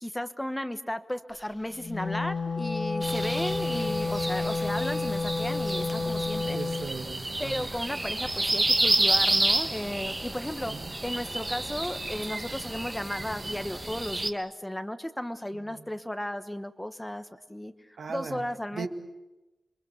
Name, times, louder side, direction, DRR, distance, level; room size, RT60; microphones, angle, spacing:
voice 1, 0.0-6.6 7.4-10.7 11.0-17.7 18.1-18.9, left 1 dB, 10° left, 10 dB, 1.1 m, -34 dB
Wind instrument woodwind instrument, 1.8-6.9, left 3 dB, 40° left, 1.7 m, -30 dB
sound 1, 3.0-14.3, right 2 dB, 20° right, 1.4 m, -30 dB
voice 2, 3.6-3.9 6.5-7.7 10.6-10.9 15.5-15.9 18.0-18.5 18.7-18.9, right 4 dB, 90° right, 6 dB, 2.1 m, -39 dB
28.0 x 23.5 x 8.2 m, 1.0 s
wide cardioid pair, 130°, 0 cm